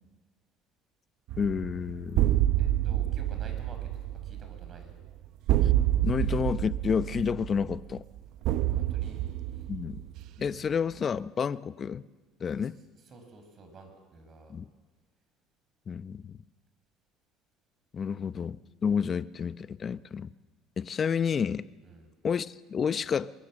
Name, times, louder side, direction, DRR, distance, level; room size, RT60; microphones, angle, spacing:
sound 1, 1.3-10.7, right 13 dB, 65° right, 0.7 m, -28 dB
voice 1, 1.4-2.3 6.0-8.0 9.7-10.0 10.4-12.1 12.4-12.8 14.5-14.7 15.9-16.3 17.9-20.3 20.8-21.7 22.2-23.3, left 6 dB, 35° left, 15 dB, 0.7 m, -30 dB
voice 2, 2.6-3.8 4.2-5.0 8.7-9.2 9.5-9.6 12.6-12.7 13.1-14.5 18.1-18.4 21.8-22.1, right 3 dB, 40° right, 6 dB, 5.8 m, -50 dB
24.0 x 22.0 x 7.6 m, 1.3 s
cardioid pair, 125°, 0 cm